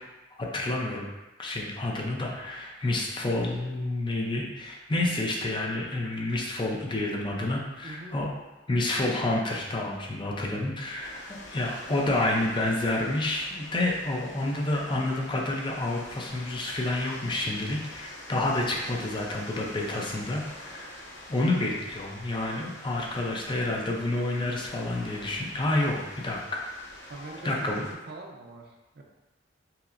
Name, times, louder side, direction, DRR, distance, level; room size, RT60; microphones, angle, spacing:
voice 1, 0.4-1.1 1.4-8.3 8.7-11.2 11.5-21.0 21.3-26.7 27.4-27.8, left 2 dB, 25° left, -1 dB, 0.5 m, -29 dB
voice 2, 7.8-8.2 21.3-21.9 27.1-29.0, right 2 dB, 60° right, 0 dB, 0.5 m, -44 dB
sound 1, 11.0-27.9, left 1 dB, 85° left, 0.7 m, -46 dB
5.5 x 2.0 x 2.5 m, 1.1 s
head